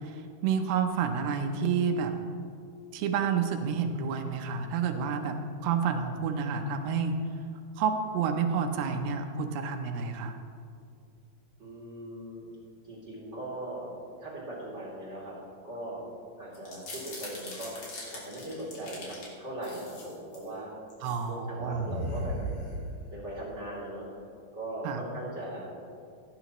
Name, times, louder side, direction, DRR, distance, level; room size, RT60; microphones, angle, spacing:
voice 1, 0.0-2.1 2.9-5.4 5.6-7.2 7.8-10.4 21.0-21.8 24.8-25.0, right 6 dB, 90° right, 5 dB, 2.8 m, -29 dB
voice 2, 11.6-12.5 12.9-13.9 14.2-15.3 15.6-16.0 16.4-17.7 18.1-20.7 21.3-22.8 23.1-24.0 24.5-25.7, right 1 dB, 20° right, -7 dB, 2.8 m, -39 dB
sound 1, 16.5-19.3 19.6-20.5 20.9-21.2 21.6-23.2, equal, 45° left, 3.2 m, -38 dB
17.0 x 9.6 x 3.0 m, 2.3 s
omnidirectional pair, 4.4 m